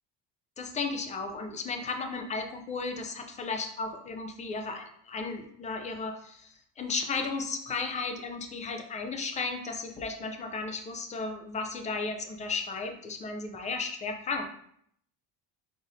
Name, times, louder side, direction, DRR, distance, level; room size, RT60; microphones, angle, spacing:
voice 1, 0.6-14.4, left 4 dB, 20° left, 6 dB, 0.4 m, -34 dB
4.9 x 4.0 x 2.6 m, 0.69 s
cardioid pair, 150°, 42 cm